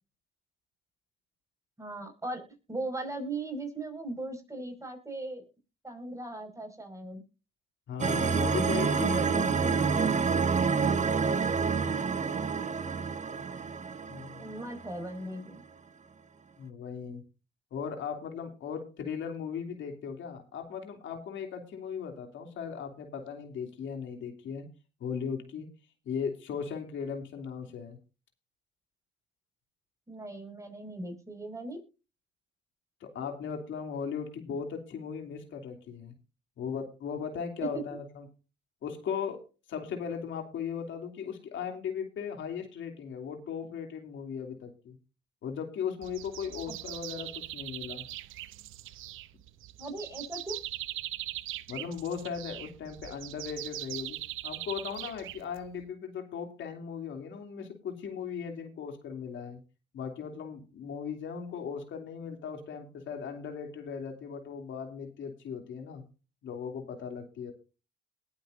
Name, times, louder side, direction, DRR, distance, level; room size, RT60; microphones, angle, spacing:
voice 1, 1.8-2.4 2.7-5.4 5.8-7.2 14.4-15.6 30.1-31.8 37.7-38.0 46.7-46.8 49.8-50.6, right 2 dB, 15° right, 5 dB, 5.5 m, -38 dB
voice 2, 7.9-10.2 14.1-14.5 16.6-17.2 17.7-24.7 25.0-25.7 26.0-28.0 33.0-36.1 36.6-38.3 38.8-39.4 39.7-45.0 45.4-48.0 51.7-54.2 54.4-59.6 59.9-66.0 66.4-67.5, left 7 dB, 75° left, 4 dB, 2.9 m, -37 dB
sound 1, 8.0-15.1, right 5 dB, 35° right, 1.4 m, -28 dB
sound 2, 46.0-55.8, right 15 dB, 90° right, 0.8 m, -41 dB
20.5 x 8.3 x 2.6 m, 0.31 s
cardioid pair, 90°, 20 cm